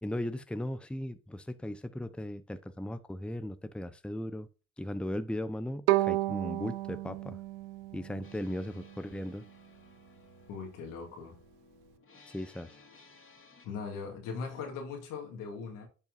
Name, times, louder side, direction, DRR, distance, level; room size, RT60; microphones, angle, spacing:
voice 1, 0.0-4.5 4.8-7.4 7.9-9.4 12.3-12.8, left 1 dB, 5° left, 0.8 m, -37 dB
Bowed string instrument, 5.9-8.9, right 18 dB, 85° right, 0.5 m, -32 dB
sound 1, 8.2-13.7, left 3 dB, 40° left, 2.5 m, -59 dB
voice 2, 10.5-11.3 13.6-15.9, left 5 dB, 80° left, 2.3 m, -40 dB
10.5 x 5.6 x 2.6 m
hypercardioid pair, 45°, 32 cm